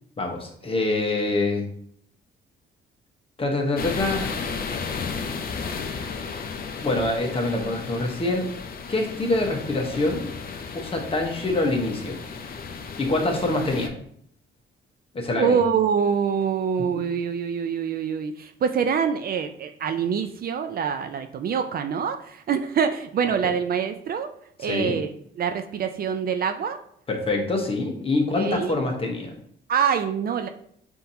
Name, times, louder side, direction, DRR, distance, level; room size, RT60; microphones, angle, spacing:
voice 1, 0.2-1.6 3.4-4.3 6.8-8.5 8.9-10.2 10.7-12.2 13.0-13.9 15.1-15.6 16.9-17.0 24.7-25.0 27.1-29.3, left 2 dB, 30° left, 2 dB, 0.9 m, -25 dB
sound 1, 3.8-13.9, left 5 dB, 50° left, 0.5 m, -34 dB
voice 2, 15.4-24.3 24.6-25.1 25.4-26.8 28.3-28.7 29.7-30.5, right 7 dB, 50° right, 7 dB, 0.4 m, -25 dB
5.7 x 2.7 x 2.7 m, 0.66 s
cardioid pair, 90°, 20 cm